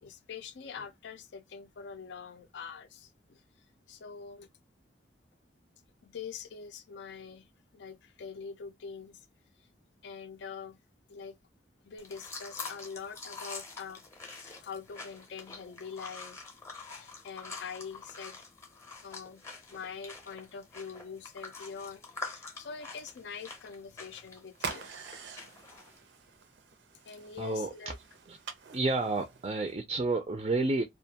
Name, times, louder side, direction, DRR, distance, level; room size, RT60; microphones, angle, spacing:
voice 1, 0.0-3.4 3.9-4.5 6.0-7.5 7.7-9.3 10.0-10.8 11.1-11.4 11.8-14.0 14.3-16.4 16.9-18.5 19.0-19.4 19.7-24.9 27.1-28.0, left 6 dB, 80° left, 0.4 m, -44 dB
sound 1, 12.0-26.0, left 4 dB, 15° left, 0.6 m, -46 dB
sound 2, 24.5-29.7, right 5 dB, 85° right, 0.5 m, -45 dB
voice 2, 27.4-27.7 28.3-28.4 28.7-30.8, right 2 dB, 35° right, 0.4 m, -30 dB
2.4 x 2.2 x 2.7 m
head